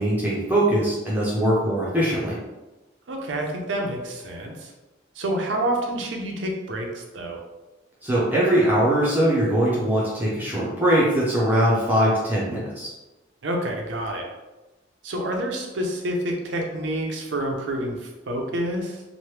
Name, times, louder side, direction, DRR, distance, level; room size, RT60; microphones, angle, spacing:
voice 1, 0.0-2.4 8.0-12.9, right 1 dB, 10° right, -7 dB, 0.5 m, -21 dB
voice 2, 3.1-4.7 5.2-7.4 13.4-14.2 15.0-19.0, right 1 dB, 75° right, 1 dB, 0.5 m, -28 dB
3.0 x 2.1 x 3.1 m, 1.1 s
head